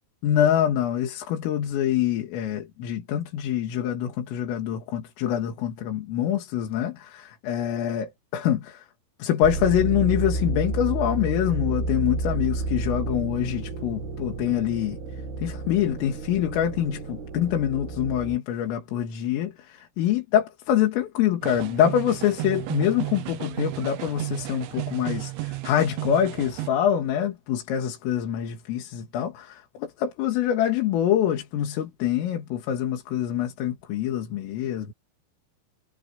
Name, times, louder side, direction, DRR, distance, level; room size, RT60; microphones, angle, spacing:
voice 1, 0.2-8.9 9.2-15.0 15.4-34.9, left 10 dB, 90° left, 5.2 m, -25 dB
sound 1, 9.4-18.4, right 3 dB, 55° right, 4.5 m, -31 dB
sound 2, 21.4-26.7, right 18 dB, 75° right, 3.5 m, -33 dB
omnidirectional pair, 5.7 m